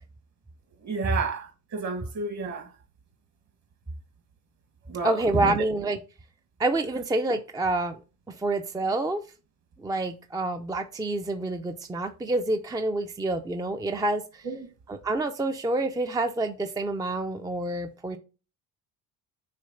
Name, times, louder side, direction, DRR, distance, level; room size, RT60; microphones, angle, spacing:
voice 1, 0.8-2.7 4.9-5.6 14.4-14.7, right 4 dB, 50° right, 1.6 m, -31 dB
voice 2, 5.0-6.0 6.6-8.0 8.3-9.2 9.8-14.5 14.9-18.2, right 2 dB, 10° right, 0.5 m, -27 dB
6.6 x 3.1 x 5.5 m
cardioid pair, 100°, 34 cm